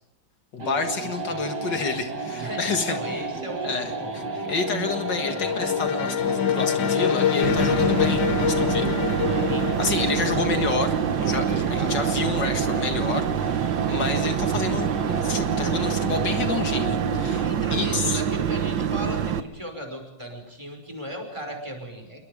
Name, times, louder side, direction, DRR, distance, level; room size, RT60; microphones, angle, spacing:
voice 1, 0.5-3.0 3.6-9.0 9.8-10.9 11.2-18.2, left 4 dB, 70° left, 6 dB, 2.4 m, -29 dB
sound 1, 0.6-17.6, right 3 dB, 65° right, 2.8 m, -32 dB
voice 2, 2.3-4.1 9.0-9.7 11.7-12.2 17.4-22.2, equal, 15° right, 3 dB, 5.6 m, -36 dB
sound 2, 3.9-11.7, left 9 dB, 85° left, 1.9 m, -26 dB
sound 3, 7.4-19.4, right 8 dB, 85° right, 1.8 m, -26 dB
27.5 x 23.0 x 5.1 m, 0.77 s
omnidirectional pair, 2.0 m